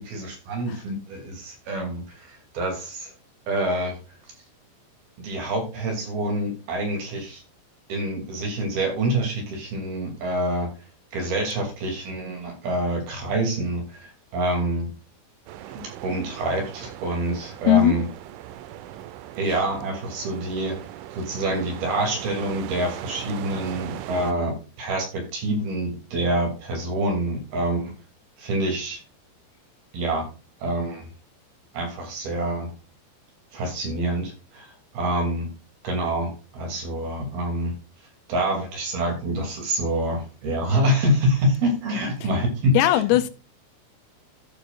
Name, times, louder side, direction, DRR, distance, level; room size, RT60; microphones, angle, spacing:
voice 1, 0.0-3.1 3.5-3.9 5.2-7.4 7.9-10.7 11.1-14.9 15.7-18.0 19.4-20.8 21.1-27.9 28.4-29.0 29.9-30.3 30.6-31.1 31.7-32.7 33.5-35.5 35.8-37.7 38.3-43.0, right 1 dB, 50° right, 4.1 m, -26 dB
sound 1, 15.5-24.3, right 12 dB, 85° right, 3.0 m, -39 dB
voice 2, 42.8-43.3, left 12 dB, 85° left, 3.5 m, -18 dB
14.0 x 6.8 x 2.4 m
omnidirectional pair, 5.9 m